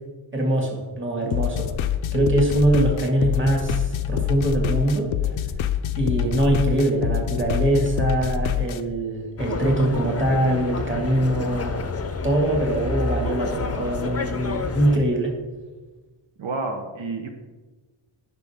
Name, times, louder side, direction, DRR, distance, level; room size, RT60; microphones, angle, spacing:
voice 1, 0.3-1.7 2.1-5.1 6.0-11.8 12.2-15.3, right 1 dB, 25° right, 0 dB, 1.9 m, -23 dB
sound 1, 1.3-8.8, left 9 dB, 75° left, 0.6 m, -25 dB
sound 2, 9.4-15.0, left 4 dB, 30° left, 0.6 m, -29 dB
voice 2, 16.4-17.3, right 3 dB, 70° right, 4 dB, 0.9 m, -29 dB
9.7 x 5.4 x 3.5 m, 1.3 s
wide cardioid pair, 105°, 49 cm